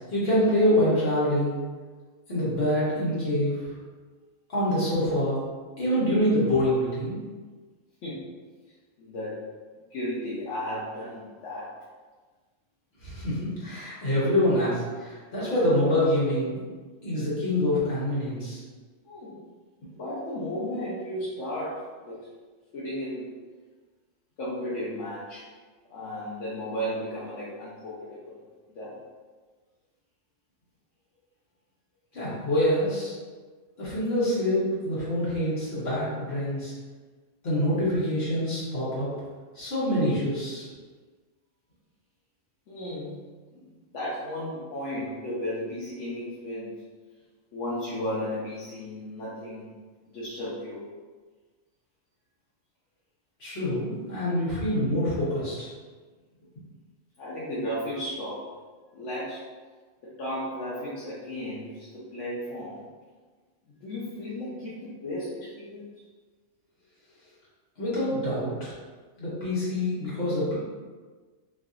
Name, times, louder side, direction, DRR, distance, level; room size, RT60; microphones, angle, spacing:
voice 1, 0.1-1.6 2.3-3.6 4.5-5.4 5.8-7.2 13.0-16.6 17.0-18.6 32.1-33.2 33.8-36.7 37.4-39.1 39.5-40.7 53.4-55.7 67.8-68.7 69.2-70.5, left 1 dB, 60° left, -9 dB, 1.4 m, -25 dB
voice 2, 9.0-9.4 9.9-11.7 19.0-19.4 19.9-22.2 22.7-23.3 24.4-25.4 25.9-28.4 28.7-28.9 42.7-43.1 43.5-43.7 43.9-46.8 47.5-49.7 50.1-50.8 57.2-58.5 58.9-59.4 60.2-62.8 63.8-65.8, equal, 80° left, -9 dB, 1.0 m, -34 dB
3.1 x 2.7 x 2.4 m, 1.4 s
omnidirectional pair, 1.2 m